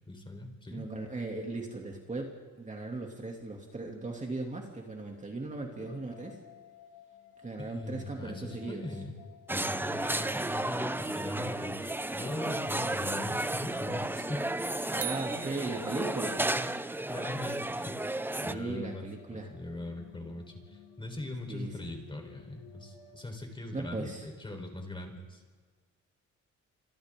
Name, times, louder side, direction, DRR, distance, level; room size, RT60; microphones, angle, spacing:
voice 1, 0.1-0.8 7.7-9.1 9.5-14.4 16.4-16.7 17.1-18.1 18.4-25.4, left 2 dB, 15° left, 3 dB, 4.3 m, -41 dB
voice 2, 0.7-6.4 7.4-8.9 10.2-10.5 14.9-16.3 18.4-19.5 21.5-21.9 23.7-24.3, right 3 dB, 25° right, 0 dB, 2.9 m, -38 dB
sound 1, 5.7-23.2, left 6 dB, 75° left, 2.2 m, -56 dB
sound 2, 9.5-18.5, right 1 dB, 5° right, 0.7 m, -33 dB
sound 3, 15.0-16.6, right 9 dB, 55° right, 1.8 m, -41 dB
27.5 x 27.0 x 3.9 m, 1.5 s
cardioid pair, 90°, 30 cm